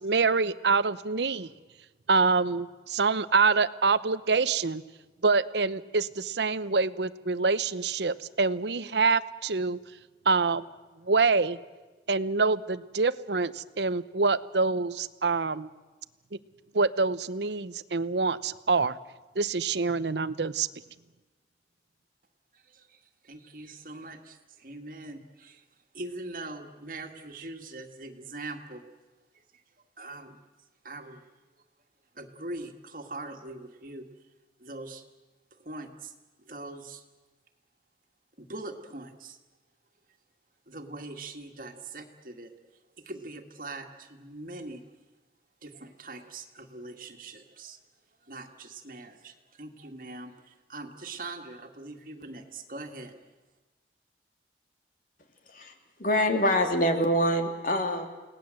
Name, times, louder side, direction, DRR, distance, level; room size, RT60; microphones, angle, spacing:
voice 1, 0.0-1.5 2.1-4.8 5.2-9.8 10.2-10.7 11.0-11.6 12.1-15.7 16.7-19.0 19.3-20.7, right 4 dB, 80° right, 15 dB, 0.9 m, -26 dB
voice 2, 22.5-25.6 25.9-28.8 29.3-30.4 30.8-31.3 32.1-34.1 34.6-35.0 35.5-36.1 36.4-37.0 38.4-39.4 40.7-42.5 43.1-44.8 45.6-47.8 48.2-53.1, right 2 dB, 50° right, 5 dB, 2.0 m, -42 dB
voice 3, 55.5-58.1, equal, 50° left, 5 dB, 2.6 m, -25 dB
30.0 x 18.5 x 7.7 m, 1.2 s
head